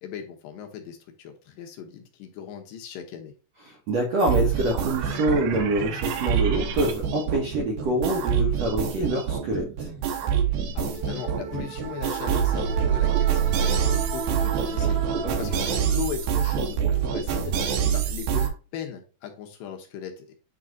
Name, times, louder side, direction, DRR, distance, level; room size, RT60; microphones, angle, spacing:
voice 1, 0.0-3.3 10.8-15.0 15.4-17.5 17.8-20.3, left 8 dB, 75° left, 3 dB, 2.5 m, -38 dB
voice 2, 3.7-9.9 15.2-15.4, right 1 dB, 65° right, -1 dB, 1.8 m, -26 dB
sound 1, 4.2-18.5, right 8 dB, 80° right, 2.7 m, -26 dB
9.7 x 3.3 x 3.9 m, 0.35 s
omnidirectional pair, 4.2 m